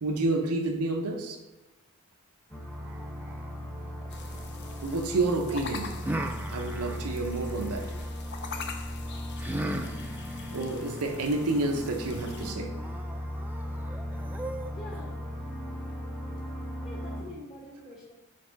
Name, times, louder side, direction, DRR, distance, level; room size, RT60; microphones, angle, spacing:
voice 1, 0.0-1.4 4.8-6.0 6.5-7.9 10.5-12.8, right 2 dB, 90° right, 0.7 m, -29 dB
sound 1, 2.5-17.2, left 1 dB, 10° left, 0.9 m, -37 dB
sound 2, 2.8-5.0 6.0-8.1 9.4-15.0, right 1 dB, 10° right, 0.3 m, -39 dB
sound 3, 4.1-12.5, left 4 dB, 50° left, 0.6 m, -44 dB
voice 2, 14.7-15.3 16.8-18.1, left 1 dB, 35° left, 1.3 m, -45 dB
5.3 x 4.8 x 5.0 m
head